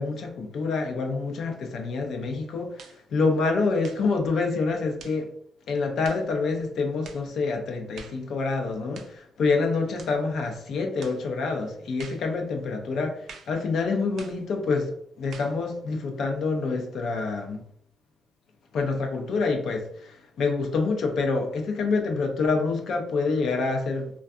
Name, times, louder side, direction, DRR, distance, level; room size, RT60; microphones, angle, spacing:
voice 1, 0.0-5.3 5.7-17.6 18.7-24.1, left 4 dB, 65° left, 0.5 m, -27 dB
sound 1, 2.8-3.0 3.8-4.1 5.0-5.2 6.0-6.3 7.0-7.3 7.9-8.2 8.9-9.2 10.0-10.2 11.0-11.2 12.0-12.3 13.3-13.6 14.2-14.4 15.3-15.6, right 5 dB, 70° right, 0.4 m, -46 dB
2.6 x 2.2 x 2.3 m
cardioid pair, 90°, 0 cm